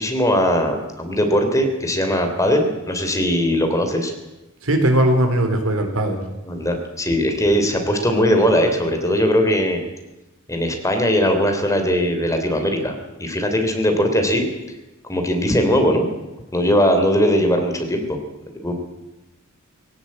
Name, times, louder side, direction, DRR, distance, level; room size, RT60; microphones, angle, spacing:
voice 1, 0.0-4.1 6.4-9.8 10.5-12.9 13.2-14.4 15.0-16.1 16.5-18.2 18.6-18.7, equal, 15° left, 5 dB, 3.3 m, -19 dB
voice 2, 4.6-6.2, right 1 dB, 80° right, 5 dB, 4.1 m, -19 dB
20.0 x 17.5 x 8.6 m, 1.0 s
head